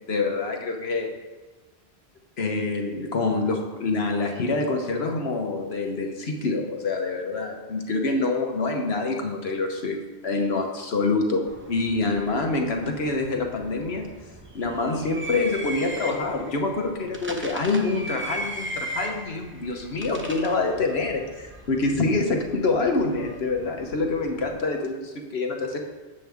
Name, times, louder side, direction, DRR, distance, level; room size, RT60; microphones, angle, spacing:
voice 1, 0.1-1.1 2.4-10.0 10.2-14.1 14.5-25.8, left 3 dB, 75° left, 3 dB, 1.2 m, -26 dB
sound 1, 11.5-24.5, right 1 dB, 15° right, 0.6 m, -39 dB
8.5 x 7.7 x 3.5 m, 1.2 s
omnidirectional pair, 1.1 m